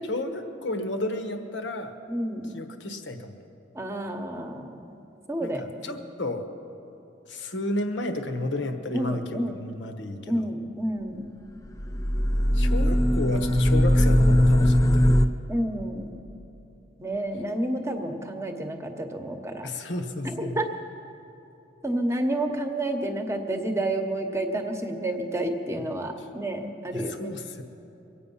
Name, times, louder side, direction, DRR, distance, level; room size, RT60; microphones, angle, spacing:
voice 1, 0.1-1.9 2.5-3.4 5.4-6.5 7.3-10.4 12.5-15.3 19.6-20.6 26.2-26.3 26.9-27.6, left 2 dB, 65° left, 7 dB, 1.2 m, -32 dB
voice 2, 2.1-2.5 3.7-4.9 5.3-6.0 8.9-9.6 10.3-11.3 15.5-16.1 17.0-19.7 20.3-20.7 21.8-27.3, right 1 dB, 15° right, 5 dB, 1.0 m, -30 dB
sound 1, 11.7-15.3, equal, 15° left, 0.5 m, -20 dB
23.5 x 8.8 x 5.6 m, 2.9 s
head